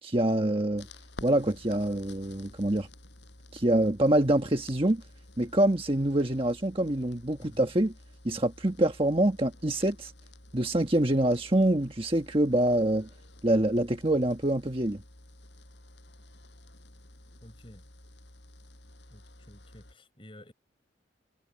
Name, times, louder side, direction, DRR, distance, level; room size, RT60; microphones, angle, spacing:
voice 1, 0.0-0.9 1.2-2.9 3.5-5.0 5.4-7.9 8.2-10.1 10.5-13.1 13.4-15.0, right 1 dB, 30° right, 1.4 m, -25 dB
sound 1, 0.7-19.9, left 1 dB, 65° left, 6.5 m, -52 dB
voice 2, 7.4-7.7 17.4-17.8 19.1-20.5, equal, 25° left, 6.1 m, -51 dB
head